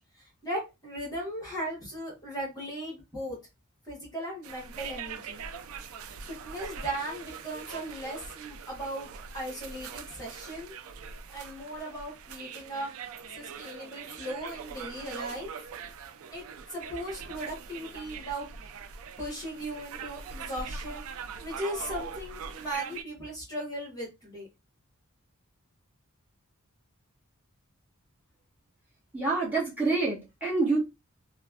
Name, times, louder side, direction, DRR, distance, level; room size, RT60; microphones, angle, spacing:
voice 1, 0.2-3.4 3.8-5.4 6.2-10.7 11.3-12.9 13.3-15.5 16.3-16.4 16.7-18.5 19.2-21.1 21.4-24.5, right 1 dB, 15° left, 1.3 m, -37 dB
sound 1, 4.4-23.0, right 6 dB, 70° right, 0.4 m, -42 dB
voice 2, 29.1-30.8, right 3 dB, 10° right, 1.2 m, -27 dB
3.3 x 2.2 x 2.4 m
head